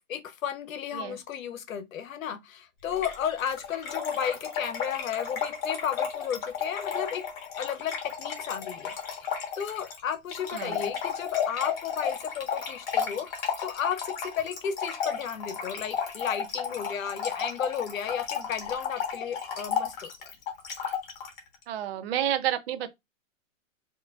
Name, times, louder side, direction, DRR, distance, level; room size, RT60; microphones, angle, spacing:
voice 1, 0.0-7.3 7.6-8.9 9.2-9.3 9.6-20.3, left 8 dB, 90° left, 0.8 m, -33 dB
Trickle dribble / Fill (with liquid), 2.9-21.4, left 7 dB, 45° left, 1.5 m, -33 dB
voice 2, 10.5-10.9 21.7-22.9, right 11 dB, 50° right, 0.7 m, -30 dB
4.3 x 2.8 x 2.4 m
hypercardioid pair, 140°, 39 cm